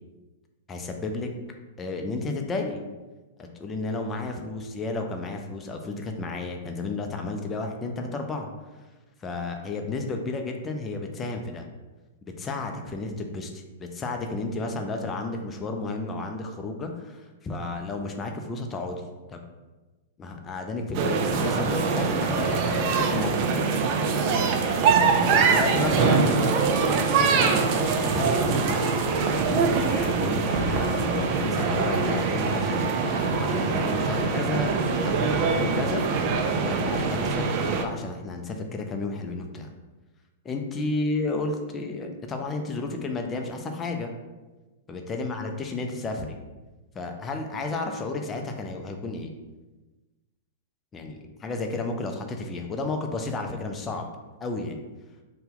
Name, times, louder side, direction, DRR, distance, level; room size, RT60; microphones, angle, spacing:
voice 1, 0.7-1.3 1.8-2.8 3.4-8.5 9.2-11.6 12.2-19.4 20.2-23.5 25.2-27.6 28.0-29.1 29.4-32.8 33.4-34.7 35.0-36.0 36.6-39.7 40.4-44.1 44.9-46.3 46.9-49.3 50.9-54.1 54.4-54.8, left 3 dB, 20° left, 3 dB, 0.4 m, -32 dB
sound 1, 20.9-37.9, right 5 dB, 45° right, 0.3 m, -23 dB
2.8 x 2.1 x 3.6 m, 1.2 s
hypercardioid pair, 105°, 0 cm